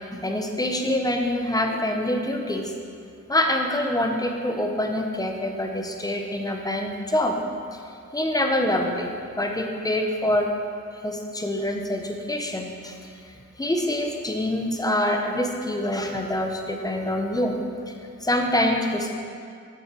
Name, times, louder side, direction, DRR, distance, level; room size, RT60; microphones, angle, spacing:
voice 1, 0.1-2.7 3.3-7.4 8.1-9.1 9.4-10.5 11.0-12.9 13.6-17.6 18.2-19.1, left 1 dB, 15° left, 3 dB, 0.7 m, -25 dB
6.2 x 6.0 x 4.5 m, 2.3 s
wide cardioid pair, 100°, 29 cm